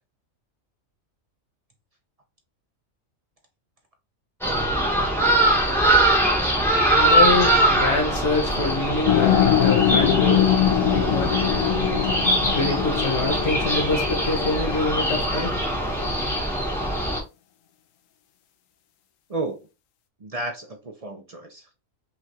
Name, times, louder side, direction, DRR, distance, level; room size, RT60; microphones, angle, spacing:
sound 1, 4.4-17.2, right 1 dB, ahead, 0.9 m, -22 dB
voice 1, 6.7-16.4, left 3 dB, 60° left, 1.7 m, -27 dB
sound 2, 9.1-15.2, left 10 dB, 75° left, 1.0 m, -23 dB
voice 2, 20.2-21.8, right 2 dB, 45° right, 0.5 m, -32 dB
5.6 x 2.4 x 2.8 m
omnidirectional pair, 1.4 m